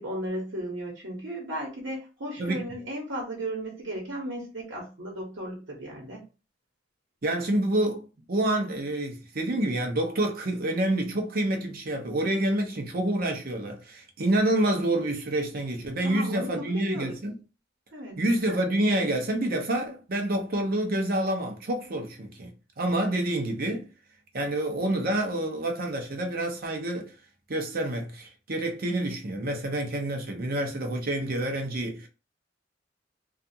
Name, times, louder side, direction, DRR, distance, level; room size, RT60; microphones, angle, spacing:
voice 1, 0.0-6.2 16.0-17.1 17.9-18.2, right 1 dB, 80° right, 1.0 m, -35 dB
voice 2, 7.2-17.3 18.2-23.9 24.3-27.1 27.5-32.1, right 1 dB, 55° right, 0.7 m, -28 dB
2.4 x 2.4 x 2.7 m
head